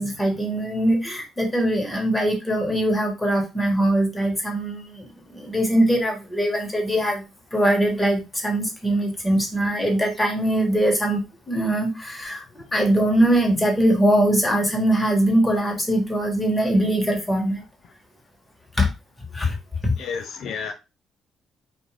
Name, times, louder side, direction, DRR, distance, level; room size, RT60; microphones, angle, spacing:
voice 1, 0.0-7.2 7.5-17.6 18.7-18.9 19.3-19.6 19.8-19.9, right 1 dB, 15° left, 1.3 m, -22 dB
voice 2, 20.0-20.7, left 6 dB, 70° left, 0.4 m, -31 dB
2.4 x 2.4 x 3.2 m
supercardioid pair, 65°, 0 cm